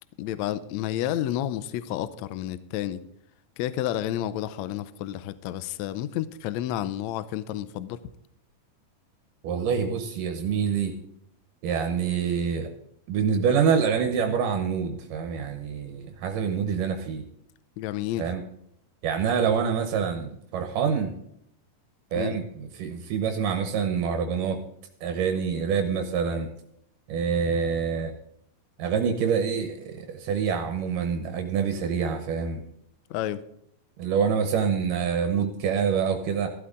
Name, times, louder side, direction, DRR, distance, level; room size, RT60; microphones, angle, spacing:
voice 1, 0.2-3.0 3.6-8.0 17.8-18.3 22.2-22.4 33.1-33.4, left 12 dB, 80° left, 15 dB, 1.7 m, -30 dB
voice 2, 9.4-10.9 11.6-12.7 13.1-17.2 18.2-18.4 19.0-21.1 22.1-24.6 25.0-26.5 27.1-28.1 28.8-32.6 34.0-36.5, right 6 dB, 80° right, 6 dB, 2.5 m, -26 dB
14.5 x 12.0 x 3.8 m, 0.74 s
omnidirectional pair, 3.8 m